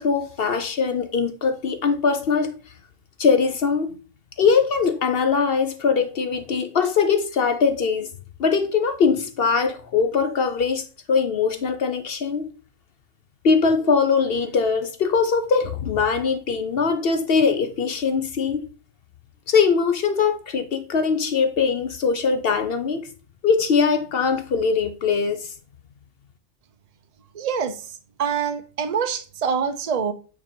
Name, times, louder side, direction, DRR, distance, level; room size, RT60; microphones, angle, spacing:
voice 1, 0.0-2.6 3.2-4.0 4.4-8.1 8.4-12.5 13.4-18.7 19.5-23.1 23.4-25.5, left 5 dB, 55° left, 0.7 m, -21 dB
voice 2, 27.3-27.7 28.2-30.1, right 6 dB, 35° right, 0.6 m, -25 dB
8.5 x 2.9 x 4.3 m
omnidirectional pair, 1.4 m